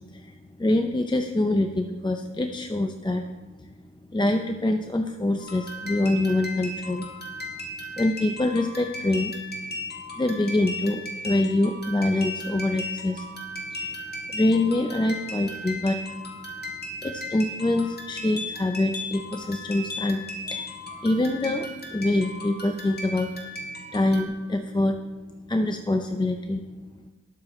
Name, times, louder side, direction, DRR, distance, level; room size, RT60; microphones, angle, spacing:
voice 1, 0.1-3.2 4.1-7.1 7.6-7.7 7.9-9.4 10.1-13.3 13.7-14.0 14.3-16.0 17.0-23.3 23.9-25.0 25.5-26.6, left 2 dB, 15° left, 5 dB, 0.6 m, -25 dB
sound 1, 5.4-24.3, left 1 dB, 35° left, 2.0 m, -36 dB
19.5 x 6.8 x 3.1 m, 1.2 s
wide cardioid pair, 90°, 30 cm